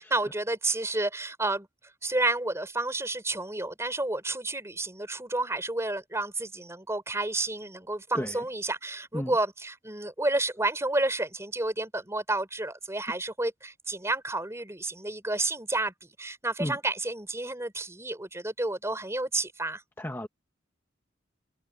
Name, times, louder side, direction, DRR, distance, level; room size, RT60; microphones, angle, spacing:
voice 1, 0.0-1.7 2.0-19.8, right 2 dB, 15° right, 3.9 m, -30 dB
voice 2, 20.0-20.3, left 1 dB, 10° left, 1.3 m, -32 dB
head